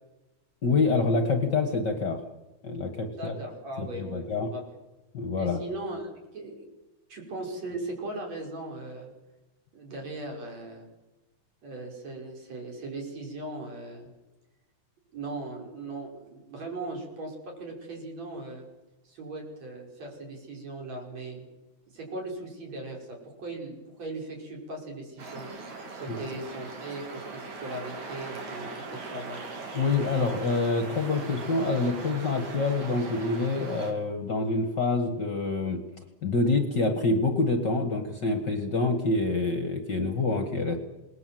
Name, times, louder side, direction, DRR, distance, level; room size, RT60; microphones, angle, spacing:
voice 1, 0.6-2.2 2.6-3.4 3.8-4.5 5.1-5.6 26.1-26.2 29.7-35.8 36.2-40.8, left 3 dB, 45° left, 7 dB, 1.9 m, -26 dB
voice 2, 3.1-4.6 5.4-6.7 7.1-9.1 9.7-10.9 11.6-14.1 15.1-18.7 19.0-21.5 21.9-25.5 26.0-29.4, right 2 dB, 60° right, 1 dB, 6.6 m, -38 dB
sound 1, 25.2-33.9, right 3 dB, 80° right, 5.0 m, -40 dB
27.5 x 20.5 x 7.7 m, 1.1 s
omnidirectional pair, 3.4 m